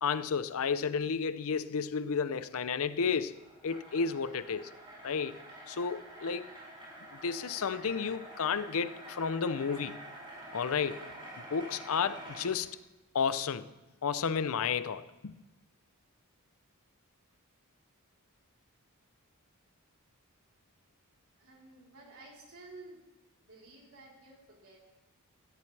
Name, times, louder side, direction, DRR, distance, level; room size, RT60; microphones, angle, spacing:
voice 1, 0.0-4.7 5.0-5.4 5.7-6.5 7.1-10.0 10.5-11.1 11.5-12.7 13.1-13.7 14.0-15.3, left 6 dB, 65° left, 0.6 m, -32 dB
sound 1, 3.0-12.5, right 1 dB, 25° right, 5.8 m, -48 dB
voice 2, 21.4-23.0 23.4-24.8, right 2 dB, 65° right, 3.8 m, -53 dB
17.0 x 15.0 x 3.3 m
head